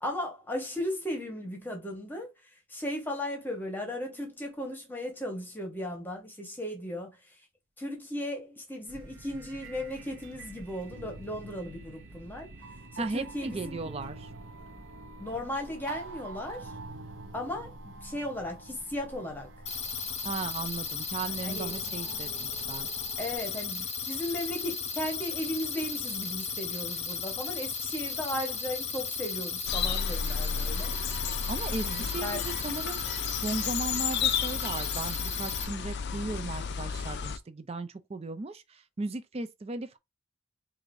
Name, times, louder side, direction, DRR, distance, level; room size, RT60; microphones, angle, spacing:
voice 1, 0.0-7.5 7.8-12.5 12.9-13.8 15.2-16.8 17.3-19.5 21.4-21.8 23.2-31.2 31.8-32.4, left 1 dB, 10° left, 1.1 m, -36 dB
sound 1, 8.9-23.4, right 2 dB, 60° right, 0.8 m, -46 dB
voice 2, 13.0-14.3 20.2-22.9 31.5-33.0 33.3-40.0, right 3 dB, 30° right, 0.4 m, -36 dB
sound 2, 19.7-35.7, left 6 dB, 30° left, 0.8 m, -35 dB
sound 3, 29.7-37.4, left 6 dB, 50° left, 0.4 m, -33 dB
4.8 x 2.6 x 2.6 m
head